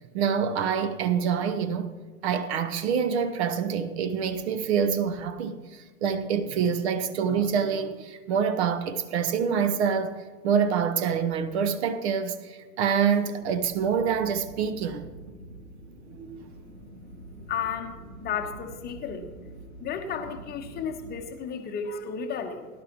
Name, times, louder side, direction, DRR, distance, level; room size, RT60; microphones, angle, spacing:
voice 1, 0.1-1.9 2.2-10.1 10.4-15.0 16.2-16.5, right 7 dB, 45° right, 11 dB, 0.9 m, -26 dB
sound 1, 13.4-21.2, right 1 dB, 75° right, 2.2 m, -45 dB
voice 2, 17.5-19.3 19.8-22.7, left 7 dB, 20° left, 6 dB, 0.9 m, -33 dB
18.0 x 11.0 x 2.9 m, 1.4 s
figure-of-eight pair, 90°, 44 cm